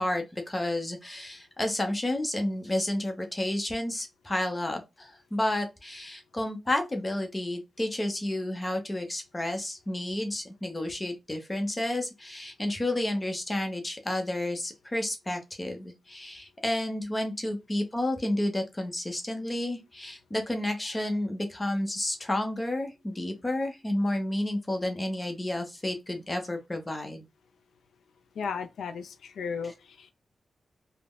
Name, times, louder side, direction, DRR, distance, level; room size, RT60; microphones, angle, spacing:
voice 1, 0.0-27.2, left 1 dB, 25° left, 0.8 m, -31 dB
voice 2, 28.4-30.1, left 6 dB, 85° left, 0.4 m, -35 dB
3.4 x 2.1 x 2.2 m
cardioid pair, 50°, 0 cm